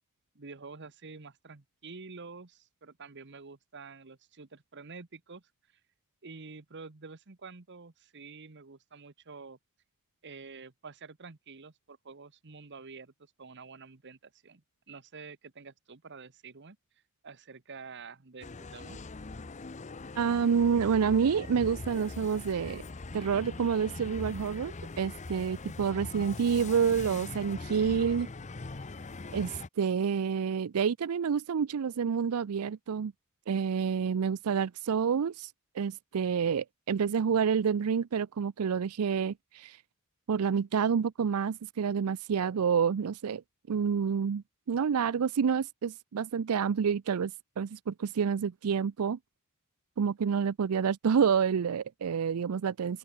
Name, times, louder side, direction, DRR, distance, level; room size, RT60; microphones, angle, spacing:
voice 1, 0.3-5.4 6.2-9.6 10.2-16.8 17.2-19.0, right 4 dB, 55° right, 1.2 m, -48 dB
sound 1, 18.4-29.7, left 3 dB, 35° left, 0.7 m, -42 dB
voice 2, 20.2-22.8 23.1-28.3 29.3-33.1 33.5-39.8 40.3-43.4 43.7-49.2 50.0-53.0, right 6 dB, 90° right, 0.5 m, -28 dB
open air
head